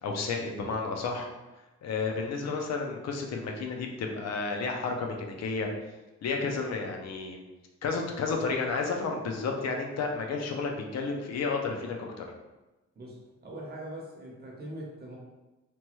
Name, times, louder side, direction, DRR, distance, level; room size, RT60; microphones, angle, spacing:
voice 1, 0.0-1.3 1.8-5.7 6.2-7.4 7.8-12.3, left 4 dB, 60° left, 2 dB, 0.5 m, -31 dB
voice 2, 13.4-15.2, right 1 dB, 35° right, -2 dB, 0.7 m, -41 dB
2.9 x 2.2 x 3.0 m, 1.1 s
wide cardioid pair, 150°, 29 cm